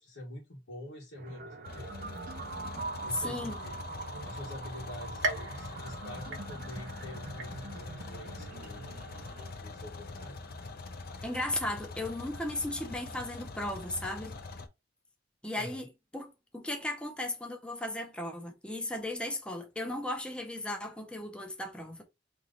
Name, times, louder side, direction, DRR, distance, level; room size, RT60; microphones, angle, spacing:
voice 1, 0.0-1.9 3.0-3.8 4.2-8.9 9.6-10.4 15.5-15.9, equal, 75° left, 1.5 m, -46 dB
sound 1, 1.2-9.5, right 3 dB, 50° right, 0.6 m, -43 dB
sound 2, 1.6-14.7, left 3 dB, 55° left, 0.7 m, -44 dB
voice 2, 3.2-3.6 11.2-14.4 15.4-15.9 16.1-22.0, left 1 dB, 5° left, 0.6 m, -36 dB
sound 3, 5.2-6.9 7.4-8.0 8.5-8.6 9.5-9.6, right 2 dB, 75° right, 0.9 m, -37 dB
3.9 x 3.1 x 3.7 m
head